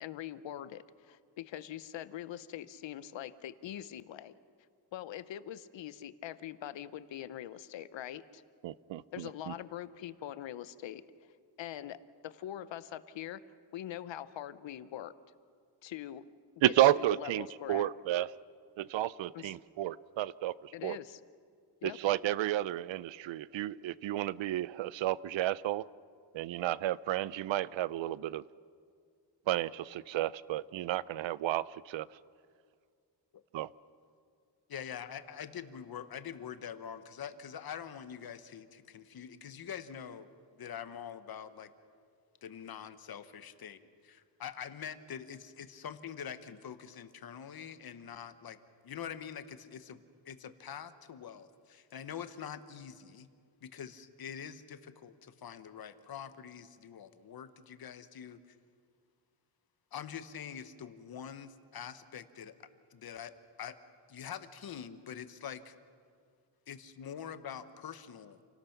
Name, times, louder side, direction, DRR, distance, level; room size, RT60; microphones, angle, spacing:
voice 1, 0.0-4.3 4.9-8.4 9.1-11.0 11.6-12.0 12.2-13.4 13.7-15.1 15.8-16.3 16.6-17.9 19.3-19.6 20.7-21.2 21.8-22.0, left 11 dB, 80° left, 15 dB, 0.8 m, -43 dB
voice 2, 8.6-9.5 16.6-18.3 18.8-21.0 21.8-25.9 26.3-28.4 29.5-32.1 33.5-33.7, right 13 dB, 85° right, 20 dB, 0.6 m, -32 dB
voice 3, 34.7-40.3 40.6-41.7 42.4-43.8 44.0-48.6 48.8-50.0 50.2-53.3 53.6-58.6 59.9-62.6 62.9-63.3 63.6-63.8 64.1-65.7 66.7-68.4, left 8 dB, 55° left, 11 dB, 1.1 m, -45 dB
28.0 x 18.5 x 5.9 m, 2.2 s
wide cardioid pair, 155°, 44 cm